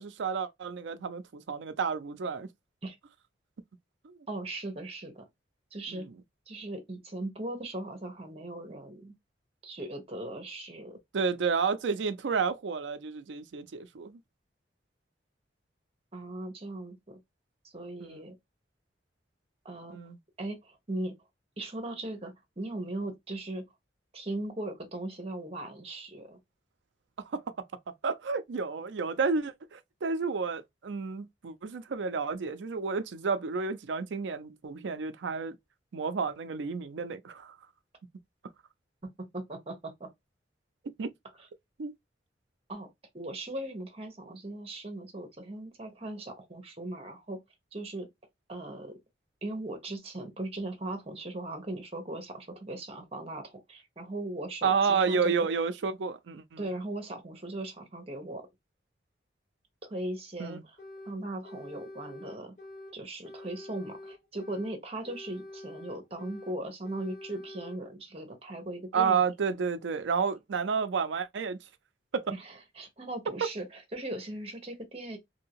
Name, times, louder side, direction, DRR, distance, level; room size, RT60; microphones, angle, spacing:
voice 1, 0.0-2.5 4.0-4.1 5.9-6.1 11.1-14.2 18.0-18.3 19.9-20.2 27.3-27.4 27.9-35.6 35.9-37.6 41.0-41.1 41.8-41.9 54.6-56.6 60.4-60.6 68.9-71.6 72.1-72.3, right 5 dB, 80° right, 0.5 m, -31 dB
voice 2, 4.3-5.3 5.7-6.1 6.5-9.1 9.6-11.0 16.1-17.2 17.7-18.4 19.6-20.0 20.4-21.1 21.6-23.6 24.1-26.4 39.0-40.1 41.4-41.5 42.7-42.9 43.1-47.4 47.7-48.1 48.5-49.0 49.4-55.3 56.6-58.5 59.9-60.8 61.1-62.6 62.9-69.2 72.3-75.2, right 1 dB, 35° right, 1.0 m, -38 dB
sound 1, 60.8-61.2 61.4-63.0 63.2-64.8 65.0-66.6 66.8-67.8, left 1 dB, 40° left, 1.9 m, -46 dB
2.8 x 2.7 x 2.9 m
head